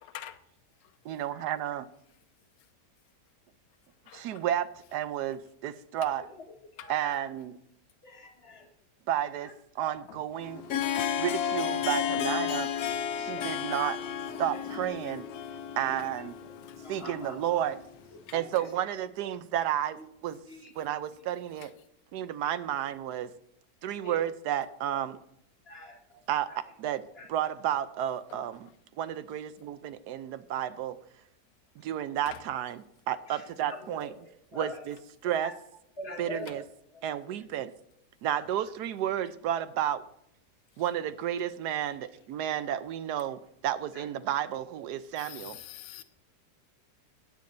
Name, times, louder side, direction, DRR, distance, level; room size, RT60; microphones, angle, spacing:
voice 1, 0.0-0.4 0.8-0.9 4.1-4.4 6.8-6.9 10.1-10.2 10.9-11.1 12.9-13.0 16.6-16.8 18.3-18.4 21.6-21.7 28.3-28.4 32.3-32.4 36.5-36.6 45.2-46.0, left 12 dB, 90° left, 1.2 m, -46 dB
voice 2, 1.0-1.9 4.1-6.2 6.9-7.6 9.1-9.5 9.8-10.6 11.2-12.7 13.2-14.0 14.4-15.3 15.8-16.3 16.9-17.8 18.3-20.4 20.8-21.7 22.1-23.3 23.8-25.2 26.3-26.5 26.8-27.0 27.3-28.7 29.0-31.0 31.8-34.1 34.5-35.0 35.2-35.5 36.2-36.6 37.0-37.7 38.2-40.0 40.8-45.6, right 11 dB, 75° right, 1.1 m, -32 dB
voice 3, 6.7-7.3 8.0-8.7 9.4-9.5 9.8-9.9 13.2-13.5 13.9-14.0 14.3-14.7 15.0-15.2 15.8-17.4 18.3-18.7 20.0-20.1 20.5-20.7 24.0-24.2 25.6-26.0 26.5-26.6 27.2-27.3 31.8-31.9 33.3-34.8 35.2-35.6 36.0-36.6 36.9-37.3 38.3-38.5 42.0-42.1 43.9-44.1 44.5-44.6, left 2 dB, 35° left, 1.7 m, -45 dB
Harp, 10.4-18.2, left 9 dB, 65° left, 1.2 m, -33 dB
15.0 x 9.4 x 2.6 m
omnidirectional pair, 1.9 m